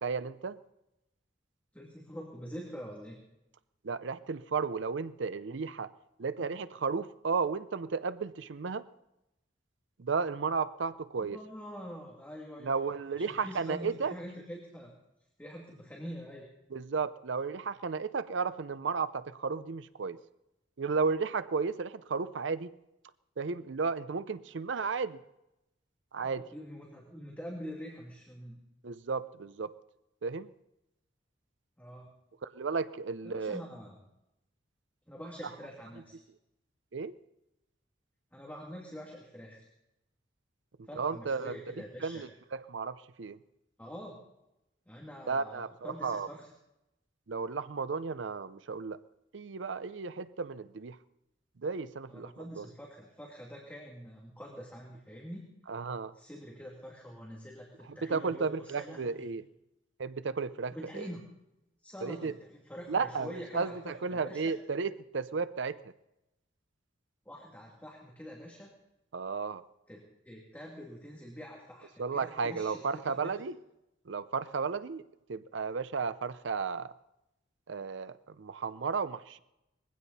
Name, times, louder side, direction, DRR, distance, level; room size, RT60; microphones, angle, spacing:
voice 1, 0.0-0.6 3.8-5.9 6.2-8.9 10.0-11.4 12.6-14.1 16.7-20.2 20.8-22.7 23.4-25.2 26.1-26.4 28.8-29.8 30.2-30.5 32.4-33.6 36.9-37.1 40.8-41.6 42.0-43.4 45.3-46.3 47.3-49.0 49.3-51.0 51.6-52.7 55.7-56.1 58.0-59.4 60.0-61.1 62.0-62.3 62.9-65.9 69.1-69.6 72.0-73.6 74.1-75.0 75.3-76.9 77.7-79.4, right 5 dB, 65° right, 14 dB, 0.6 m, -34 dB
voice 2, 1.7-3.2 6.4-6.5 11.2-14.9 15.4-16.5 26.2-28.6 31.8-32.1 33.2-34.0 35.1-36.2 38.3-39.7 40.9-42.2 43.8-44.2 44.9-46.5 52.1-55.5 56.1-59.3 60.7-61.2 61.8-64.4 67.2-68.7 69.9-73.3, equal, 10° left, -2 dB, 2.5 m, -45 dB
21.0 x 16.0 x 4.2 m, 0.89 s
head